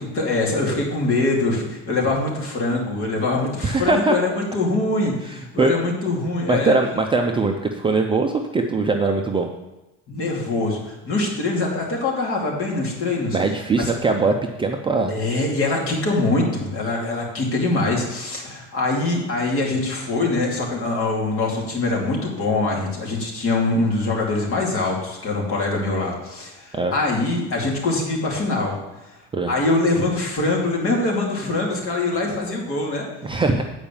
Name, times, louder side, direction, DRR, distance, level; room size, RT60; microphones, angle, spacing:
voice 1, 0.1-6.7 10.1-13.4 13.8-13.9 15.1-28.8 29.5-33.1, left 2 dB, 40° left, -2 dB, 2.5 m, -23 dB
voice 2, 3.6-4.2 5.2-5.7 6.5-9.5 13.3-15.1 26.7-26.9 29.3-29.5 33.2-33.6, right 3 dB, 15° right, 3 dB, 0.5 m, -21 dB
8.8 x 4.9 x 7.1 m, 1.0 s
cardioid pair, 145°, 32 cm